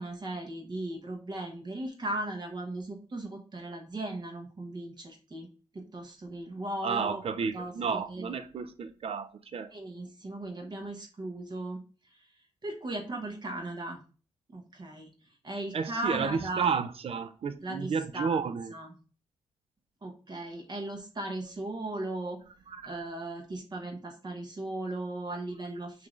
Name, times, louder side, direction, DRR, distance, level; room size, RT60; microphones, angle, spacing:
voice 1, 0.0-5.5 5.7-7.2 7.5-8.4 9.7-11.8 12.1-12.3 12.6-14.0 14.5-16.7 17.6-18.9 20.0-22.4 22.8-26.1, right 2 dB, 40° right, 1.1 m, -37 dB
voice 2, 6.8-9.7 15.7-18.7 22.7-22.9, right 6 dB, 60° right, 0.5 m, -32 dB
5.7 x 2.6 x 3.1 m
supercardioid pair, 55°, 11 cm